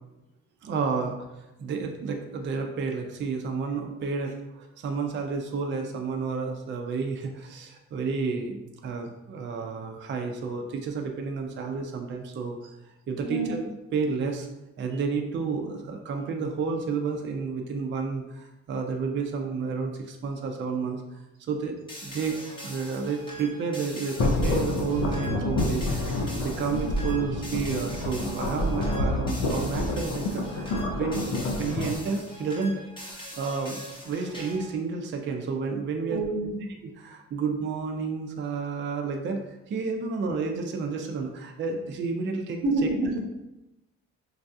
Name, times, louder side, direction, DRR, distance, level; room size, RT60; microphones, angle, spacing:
voice 1, 0.6-1.2 1.6-12.6 13.1-14.5 14.8-31.3 31.6-36.2 36.8-39.4 39.7-42.9, right 5 dB, 40° right, 3 dB, 0.4 m, -31 dB
voice 2, 13.2-13.6 14.9-15.0 35.9-36.6 42.6-43.2, right 2 dB, 80° right, 1 dB, 0.7 m, -28 dB
sound 1, 21.9-34.8, equal, 15° left, 0.8 m, -42 dB
sound 2, 24.2-32.0, left 2 dB, 85° left, 0.6 m, -28 dB
3.2 x 2.3 x 2.6 m, 0.95 s
cardioid pair, 90°, 30 cm